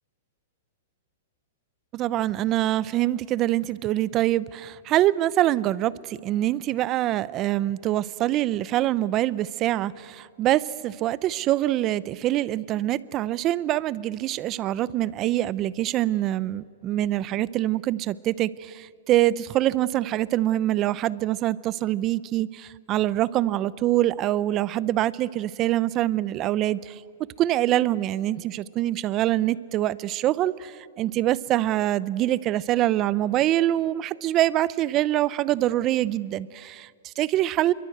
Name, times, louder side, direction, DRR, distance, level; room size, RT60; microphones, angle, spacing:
voice 1, 1.9-27.0 27.4-37.7, right 14 dB, 30° right, 19 dB, 0.6 m, -24 dB
27.5 x 23.0 x 7.9 m, 2.3 s
hypercardioid pair, 150°, 0 cm